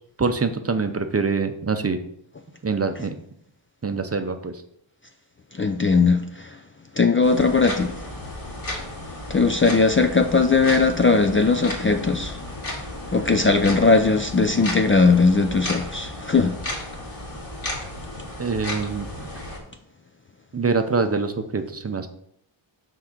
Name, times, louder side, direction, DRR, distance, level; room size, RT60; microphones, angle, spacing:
voice 1, 0.2-2.0 2.6-3.1 3.8-4.5 18.4-19.3 20.5-22.1, right 4 dB, 30° right, 0.6 m, -24 dB
voice 2, 5.6-6.6 7.0-8.0 9.3-12.4 13.1-16.6, left 4 dB, 30° left, 0.4 m, -19 dB
sound 1, 7.2-19.6, left 1 dB, 50° left, 2.3 m, -34 dB
6.0 x 4.6 x 6.5 m
wide cardioid pair, 145°, 46 cm